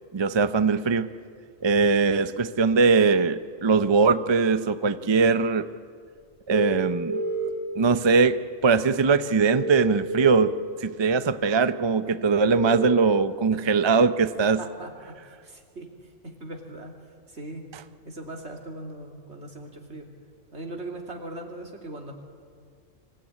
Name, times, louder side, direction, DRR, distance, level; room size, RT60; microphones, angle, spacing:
voice 1, 0.1-1.1 1.6-5.7 6.5-7.2 7.8-10.5 10.8-14.6, right 4 dB, 35° right, 12 dB, 0.4 m, -21 dB
sound 1, 6.5-7.5 9.5-10.5 12.5-12.9, right 4 dB, 85° right, 4.6 m, -29 dB
voice 2, 14.6-16.9 17.3-17.7 18.0-20.1 20.5-22.1, right 1 dB, 55° right, 1 dB, 3.1 m, -40 dB
25.0 x 16.0 x 9.7 m, 2.1 s
omnidirectional pair, 1.3 m